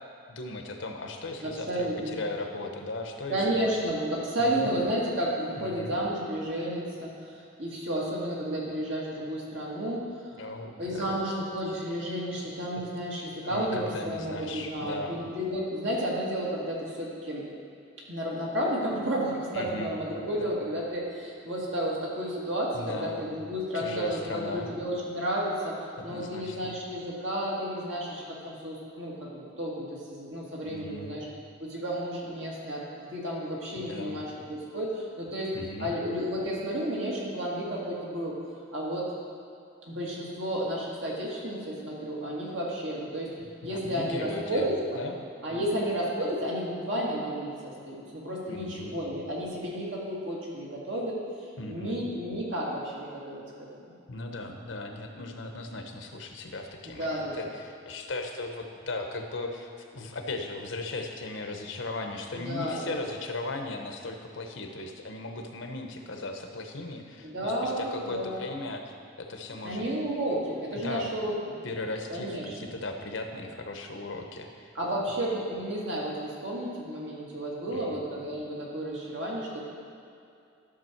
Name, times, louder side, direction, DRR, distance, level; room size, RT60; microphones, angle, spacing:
voice 1, 0.3-3.7 4.4-4.7 5.5-5.9 10.4-11.2 12.8-12.9 13.5-15.2 19.5-19.9 20.4-20.6 22.7-23.3 23.7-24.7 26.0-26.7 30.7-31.2 33.9-34.2 35.5-35.9 43.4-44.7 45.0-45.8 48.5-49.0 51.6-52.1 54.1-69.8 70.7-71.1 71.6-74.7 77.7-78.0, left 2 dB, 75° left, 4 dB, 1.0 m, -37 dB
voice 2, 1.4-2.2 3.3-10.1 10.8-17.4 18.1-25.7 26.0-31.3 31.6-32.8 33.1-35.5 35.8-38.4 38.7-39.1 39.9-43.3 43.6-45.0 45.4-51.2 51.7-53.4 56.9-57.5 62.3-62.9 67.2-68.4 69.6-71.6 72.1-72.7 74.7-79.6, equal, 70° right, -5 dB, 2.3 m, -32 dB
12.5 x 6.3 x 4.5 m, 2.6 s
head